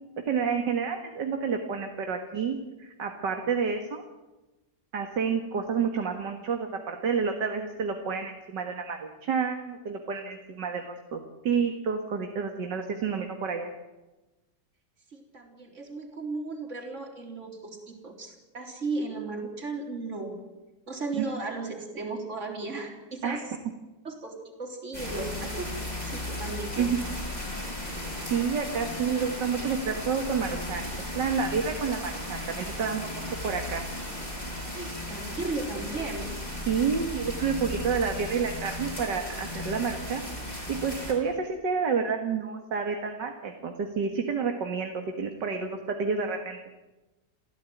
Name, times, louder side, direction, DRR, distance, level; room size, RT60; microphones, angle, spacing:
voice 1, 0.3-4.0 4.9-13.7 21.1-21.2 23.2-23.4 26.8-27.0 28.3-33.8 36.7-40.2 40.5-46.6, right 6 dB, 80° right, 5 dB, 2.4 m, -29 dB
voice 2, 15.1-20.4 20.9-23.5 24.0-25.7 26.0-27.0 34.7-36.3, right 3 dB, 40° right, 2 dB, 4.2 m, -35 dB
sound 1, 24.9-41.1, left 1 dB, 20° left, 7.3 m, -36 dB
29.0 x 15.5 x 9.3 m, 1.1 s
omnidirectional pair, 1.9 m